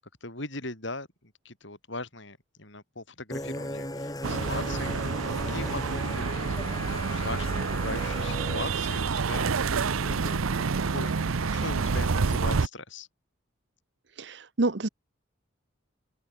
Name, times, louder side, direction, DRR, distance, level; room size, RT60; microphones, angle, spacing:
voice 1, 0.2-5.0 5.5-13.1, left 2 dB, 65° left, 6.0 m, -40 dB
sound 1, 3.3-8.7, left 1 dB, 20° left, 2.4 m, -37 dB
sound 2, 4.2-12.7, right 4 dB, 90° right, 0.7 m, -28 dB
voice 2, 14.2-14.9, right 2 dB, 55° right, 0.9 m, -28 dB
open air
head